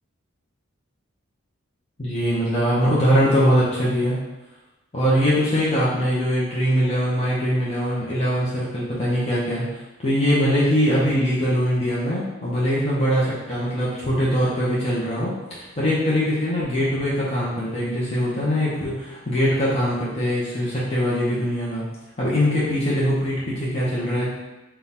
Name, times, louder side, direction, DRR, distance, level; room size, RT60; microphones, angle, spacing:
voice 1, 2.0-4.2 4.9-9.6 10.0-21.8 22.2-24.3, equal, 30° left, -8 dB, 0.7 m, -22 dB
3.7 x 2.3 x 4.1 m, 1.0 s
head